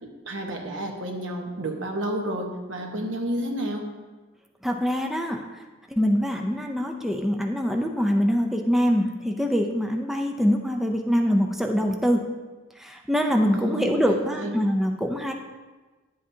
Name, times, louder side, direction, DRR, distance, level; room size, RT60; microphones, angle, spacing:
voice 1, 0.0-3.8 13.5-14.5, right 1 dB, 75° right, 2 dB, 1.1 m, -31 dB
voice 2, 4.6-5.6 5.9-12.2 12.8-15.3, equal, ahead, 2 dB, 0.5 m, -24 dB
10.5 x 7.6 x 2.7 m, 1.3 s
head